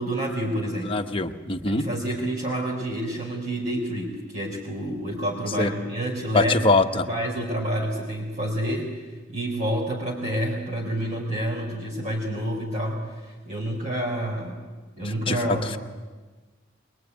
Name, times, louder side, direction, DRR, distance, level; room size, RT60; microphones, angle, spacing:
voice 1, 0.0-1.0 1.6-6.6 6.9-8.9 9.3-14.6 15.0-15.8, right 1 dB, 40° right, -3 dB, 4.1 m, -28 dB
voice 2, 0.9-1.8 5.6-5.7 6.3-7.1 15.3-15.8, left 3 dB, 30° left, 5 dB, 1.2 m, -23 dB
23.5 x 22.5 x 9.4 m, 1.3 s
head